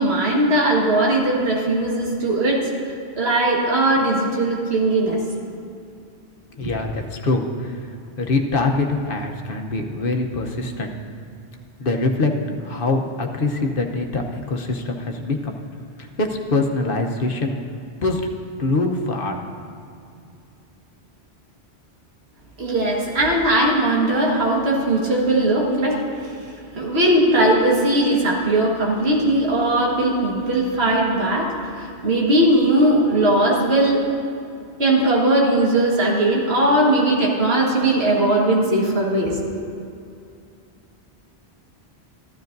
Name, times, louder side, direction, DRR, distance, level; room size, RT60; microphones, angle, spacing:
voice 1, 0.0-2.7 3.2-5.2 6.6-6.7 22.6-26.3 26.8-34.0 34.8-39.4, right 1 dB, 70° right, -2 dB, 1.9 m, -19 dB
voice 2, 6.5-10.9 11.8-15.6 16.0-17.6 18.0-18.2 18.6-19.4, left 2 dB, 55° left, 3 dB, 1.0 m, -24 dB
15.0 x 12.0 x 2.6 m, 2.5 s
omnidirectional pair, 1.1 m